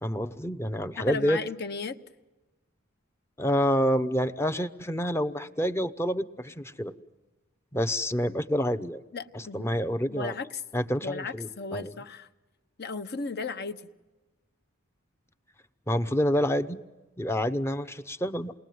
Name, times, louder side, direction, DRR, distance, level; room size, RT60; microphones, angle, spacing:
voice 1, 0.0-1.4 3.4-6.9 7.7-9.0 9.3-10.4 10.7-11.9 15.9-16.8 17.2-18.5, equal, 10° left, 8 dB, 0.8 m, -28 dB
voice 2, 1.0-2.0 9.1-9.7 10.1-10.6 11.0-12.3 12.8-13.8, left 4 dB, 50° left, 9 dB, 1.1 m, -35 dB
28.5 x 21.0 x 9.4 m, 1.2 s
head